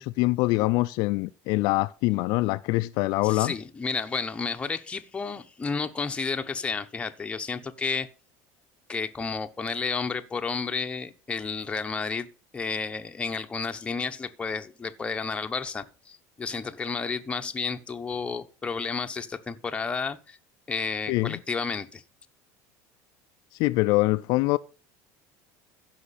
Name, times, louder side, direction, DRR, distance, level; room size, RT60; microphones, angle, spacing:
voice 1, 0.0-3.5 21.1-21.4 23.6-24.6, left 21 dB, 65° left, 0.4 m, -24 dB
voice 2, 3.2-8.1 8.9-12.3 12.5-20.4 20.7-22.0, left 4 dB, 15° left, 0.8 m, -31 dB
15.0 x 5.8 x 4.1 m
cardioid pair, 135°, 7 cm